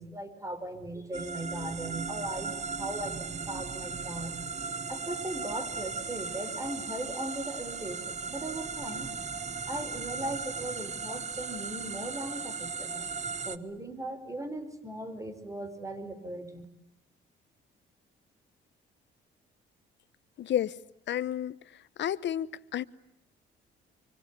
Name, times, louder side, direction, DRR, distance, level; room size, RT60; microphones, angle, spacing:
voice 1, 0.0-4.4 4.9-9.1 9.7-13.0 13.4-16.6, right 1 dB, 15° right, 5.0 m, -38 dB
sound 1, 1.1-13.6, right 5 dB, 35° right, 1.1 m, -37 dB
voice 2, 20.4-20.8 21.1-22.5 22.7-22.8, left 11 dB, 65° left, 1.0 m, -31 dB
26.0 x 25.0 x 8.3 m
cardioid pair, 90°, 20 cm